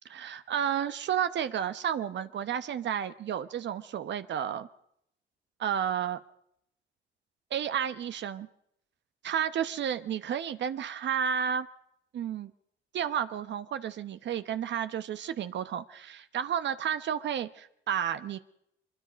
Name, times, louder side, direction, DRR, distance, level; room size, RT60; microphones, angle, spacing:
voice 1, 0.1-4.7 5.6-6.2 7.5-8.5 9.2-11.7 12.1-12.5 12.9-18.4, right 9 dB, 65° right, 11 dB, 0.9 m, -31 dB
23.5 x 22.5 x 5.2 m, 0.75 s
cardioid pair, 90°, 20 cm